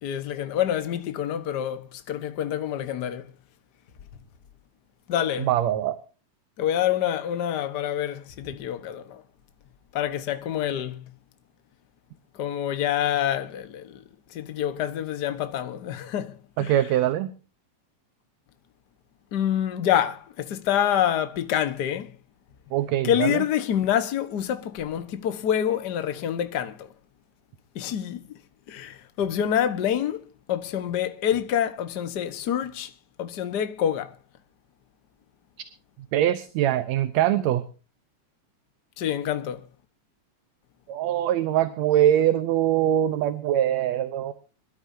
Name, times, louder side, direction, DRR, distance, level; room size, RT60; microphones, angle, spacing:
voice 1, 0.0-3.2 5.1-5.5 6.6-9.2 9.9-11.0 12.4-14.0 14.3-16.8 19.3-22.1 23.0-26.9 27.7-28.2 28.7-30.2 30.5-32.9 33.2-34.1 39.0-39.6, left 10 dB, 50° left, 1.3 m, -27 dB
voice 2, 5.4-6.0 16.6-17.3 22.7-23.4 36.1-37.6 40.9-44.3, right 11 dB, 75° right, 2.0 m, -23 dB
25.0 x 12.5 x 2.7 m
omnidirectional pair, 3.3 m